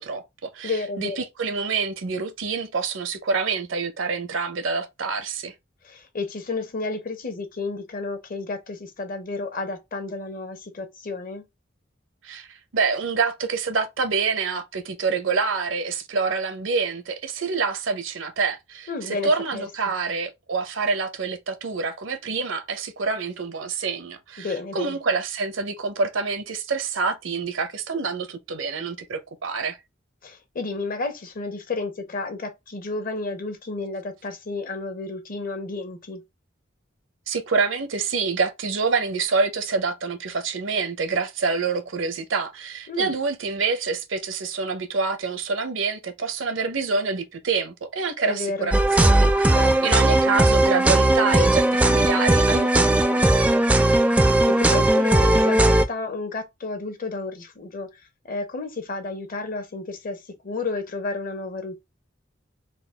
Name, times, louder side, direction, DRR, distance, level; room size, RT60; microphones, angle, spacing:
voice 1, 0.0-5.5 12.2-29.8 37.3-53.5, right 4 dB, 85° right, 0.8 m, -27 dB
voice 2, 0.6-1.3 5.8-11.5 18.9-19.6 24.4-25.0 30.2-36.2 42.9-43.1 48.2-48.7 49.5-49.9 54.0-58.0 58.2-61.8, left 3 dB, 45° left, 0.8 m, -31 dB
sound 1, 48.7-55.8, right 1 dB, 5° right, 0.3 m, -18 dB
3.9 x 2.3 x 3.4 m
head